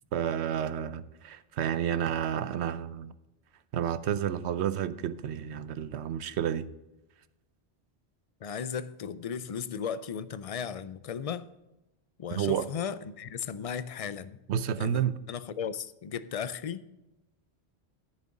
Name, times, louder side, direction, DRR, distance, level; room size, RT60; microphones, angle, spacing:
voice 1, 0.1-3.1 3.7-6.7 12.4-12.7 14.5-15.2, right 9 dB, 85° right, 0.9 m, -30 dB
voice 2, 8.4-11.5 12.2-14.4 14.8-15.0 15.3-16.8, left 7 dB, 50° left, 0.4 m, -36 dB
11.0 x 9.7 x 3.8 m
omnidirectional pair, 1.1 m